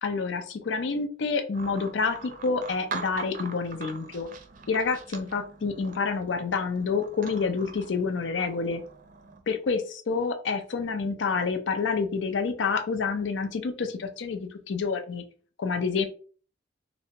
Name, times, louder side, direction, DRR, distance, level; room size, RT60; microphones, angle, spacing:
voice 1, 0.0-4.3 4.7-8.8 9.5-15.2 15.6-16.0, left 4 dB, 75° left, 7 dB, 0.5 m, -28 dB
sound 1, 1.5-9.4, right 5 dB, 45° right, 0.4 m, -42 dB
3.3 x 2.0 x 2.7 m, 0.41 s
head